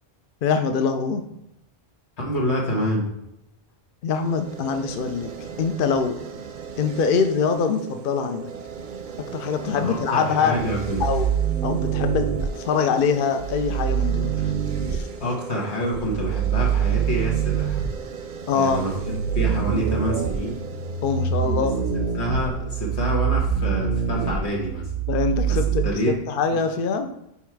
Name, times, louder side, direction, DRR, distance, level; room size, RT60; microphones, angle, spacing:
voice 1, 0.4-1.2 4.0-5.3 5.6-6.2 6.8-8.5 9.3-10.6 11.0-11.3 11.6-12.3 12.6-14.5 14.9-15.1 18.5-18.8 21.0-21.8 25.1-27.1, left 5 dB, 60° left, 7 dB, 0.7 m, -23 dB
voice 2, 2.2-3.1 9.7-11.0 15.2-17.8 18.5-20.6 22.1-24.9 25.5-26.2 26.5-26.6, equal, 90° left, -2 dB, 1.7 m, -27 dB
sound 1, 4.1-23.2, right 6 dB, 55° right, 0.7 m, -38 dB
sound 2, 10.5-12.5 13.4-15.0 15.9-18.0 18.7-25.9, right 8 dB, 85° right, 0.9 m, -25 dB
5.5 x 4.2 x 4.6 m, 0.85 s
omnidirectional pair, 1.1 m